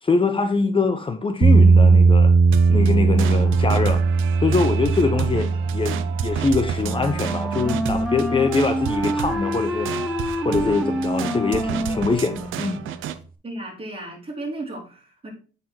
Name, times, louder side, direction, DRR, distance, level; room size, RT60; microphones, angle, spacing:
voice 1, 0.0-2.3 2.7-4.0 4.4-10.1 10.4-12.8, left 4 dB, 25° left, 0.8 m, -23 dB
sound 1, 1.4-9.5, right 4 dB, 45° right, 1.2 m, -19 dB
sound 2, 2.5-13.2, right 10 dB, 85° right, 0.6 m, -32 dB
Wind instrument woodwind instrument, 6.8-13.0, equal, ahead, 0.9 m, -27 dB
voice 2, 13.4-15.3, right 2 dB, 30° right, 3.3 m, -34 dB
8.2 x 4.1 x 4.4 m
cardioid pair, 90°, 20 cm